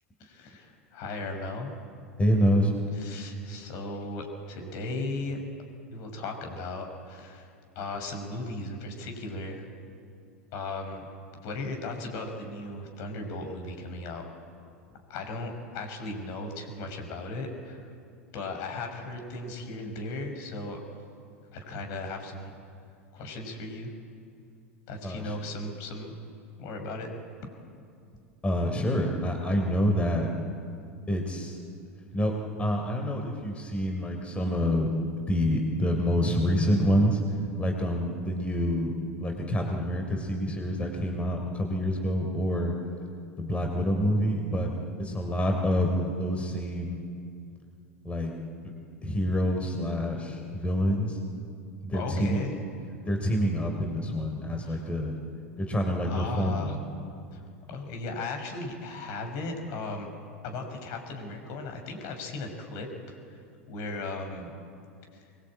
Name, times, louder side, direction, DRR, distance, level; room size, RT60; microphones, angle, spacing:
voice 1, 0.2-1.7 3.0-5.4 5.9-7.5 7.8-9.7 10.5-11.0 11.4-14.2 15.1-17.9 18.3-20.8 21.5-22.5 23.1-23.9 24.9-26.1 26.6-27.1 51.9-52.5 54.7-54.8 56.0-56.8 57.3-57.4 57.7-60.1 60.4-63.4 63.7-64.5 65.1-65.2, left 2 dB, 50° left, 4 dB, 5.6 m, -36 dB
voice 2, 2.2-2.7 25.0-25.4 28.4-30.3 31.1-31.6 32.1-34.9 35.3-37.2 37.6-38.9 39.2-42.7 43.4-44.7 45.0-47.0 48.0-48.3 49.0-51.2 51.8-52.4 53.0-55.1 55.6-56.8, equal, 15° left, 2 dB, 3.6 m, -27 dB
24.5 x 21.5 x 8.8 m, 2.4 s
figure-of-eight pair, 85°, 7 cm